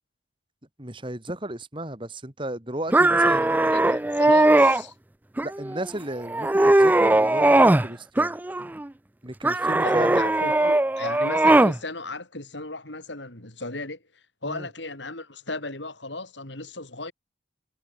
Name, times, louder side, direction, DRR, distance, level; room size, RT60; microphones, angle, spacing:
voice 1, 0.8-3.5 5.4-8.3 9.2-10.2 14.5-14.7, right 1 dB, 25° right, 2.7 m, -34 dB
sound 1, 2.9-4.8 5.4-5.9 6.3-7.9 8.2-8.9 9.4-11.8, right 2 dB, 10° right, 0.3 m, -19 dB
voice 2, 3.2-4.9 9.8-17.1, left 2 dB, 70° left, 5.6 m, -36 dB
head